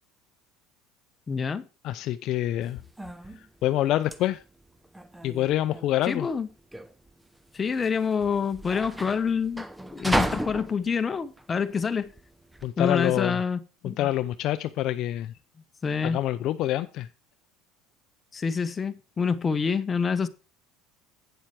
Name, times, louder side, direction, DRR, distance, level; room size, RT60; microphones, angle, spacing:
voice 1, 1.3-1.6 6.1-6.5 7.5-9.6 9.9-12.1 12.8-13.6 13.8-14.1 15.8-16.2 18.3-20.3, left 6 dB, 25° left, 0.9 m, -27 dB
voice 2, 1.8-2.8 3.6-4.4 5.2-6.3 12.6-13.4 13.8-15.3 16.0-17.1, left 14 dB, 55° left, 0.6 m, -26 dB
sound 1, 2.6-12.7, right 1 dB, 5° right, 0.8 m, -34 dB
9.0 x 7.2 x 4.7 m
supercardioid pair, 105°, 0 cm